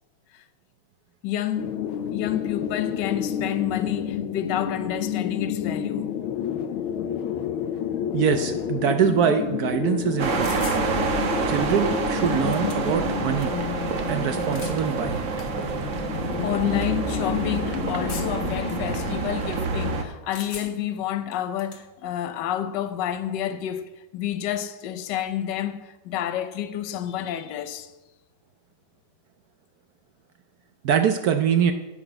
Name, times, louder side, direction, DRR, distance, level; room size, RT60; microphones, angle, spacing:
voice 1, 1.2-1.8 2.1-6.1 16.4-27.9, left 11 dB, 65° left, 1.3 m, -29 dB
sound 1, 1.6-19.2, left 9 dB, 85° left, 1.6 m, -30 dB
voice 2, 8.1-10.7 11.5-13.5 14.1-15.2 30.8-31.7, right 8 dB, 70° right, 0.9 m, -23 dB
sound 2, 10.2-20.0, right 5 dB, 50° right, 1.0 m, -28 dB
sound 3, 10.4-10.8 11.9-12.0 12.3-13.1 14.3-14.8 15.4-15.5 16.3-16.5 18.1-18.5 20.3-20.9 21.3-21.8, left 4 dB, 40° left, 1.1 m, -39 dB
11.0 x 6.0 x 7.8 m
omnidirectional pair, 2.2 m